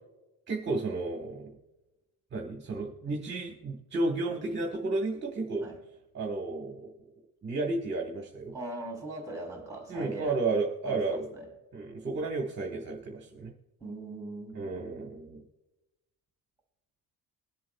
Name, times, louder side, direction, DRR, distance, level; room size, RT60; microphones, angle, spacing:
voice 1, 0.5-1.5 2.3-5.7 6.1-6.9 7.4-8.5 9.9-11.3 11.7-13.5 14.5-15.4, right 3 dB, 30° right, 1 dB, 1.4 m, -32 dB
voice 2, 8.5-10.4 10.8-11.5 13.8-14.9, right 2 dB, 10° right, 1 dB, 3.3 m, -40 dB
22.5 x 7.5 x 2.3 m, 1.0 s
cardioid pair, 165°, 36 cm